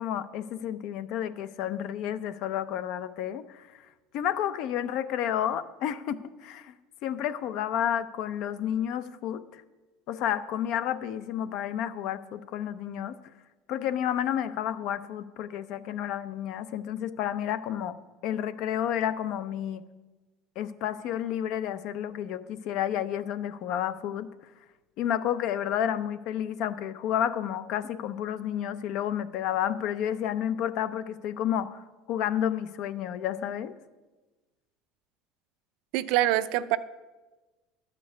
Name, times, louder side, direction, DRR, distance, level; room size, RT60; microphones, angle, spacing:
voice 1, 0.0-3.8 4.1-6.7 7.0-9.6 10.1-13.2 13.7-17.9 18.2-19.8 20.6-24.3 25.0-33.7, left 10 dB, 60° left, 13 dB, 0.6 m, -31 dB
voice 2, 35.9-36.8, right 14 dB, 70° right, 13 dB, 0.5 m, -24 dB
11.5 x 5.3 x 8.2 m, 1.2 s
cardioid pair, 140°, 0 cm